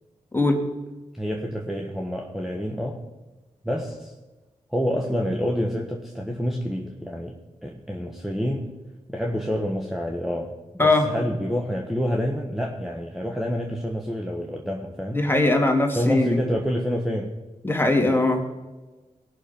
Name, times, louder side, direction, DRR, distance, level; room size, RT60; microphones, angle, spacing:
voice 1, 1.2-3.0 3.6-4.1 4.7-8.8 9.1-10.5 10.8-15.3 15.9-17.3, equal, ahead, 0 dB, 1.4 m, -28 dB
voice 2, 15.1-16.4 17.6-18.4, left 2 dB, 15° left, 2 dB, 2.7 m, -20 dB
18.5 x 6.5 x 5.3 m, 1.2 s
cardioid pair, 45°, 14 cm